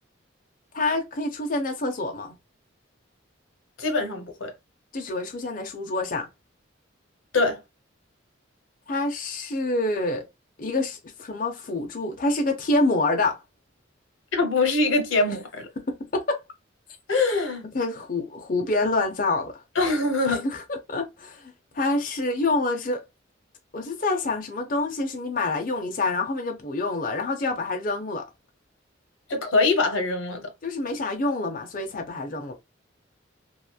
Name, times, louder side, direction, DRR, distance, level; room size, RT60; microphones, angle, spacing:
voice 1, 0.7-2.3 4.9-6.3 8.9-10.2 10.6-13.4 15.3-15.4 15.8-16.4 17.7-19.6 20.3-23.0 23.7-28.2 30.6-32.5, left 2 dB, 45° left, 0.6 m, -27 dB
voice 2, 3.8-4.5 7.3-7.6 14.3-15.7 17.1-17.7 19.8-20.4 29.3-30.4, left 3 dB, 85° left, 0.9 m, -23 dB
3.0 x 2.3 x 2.2 m
head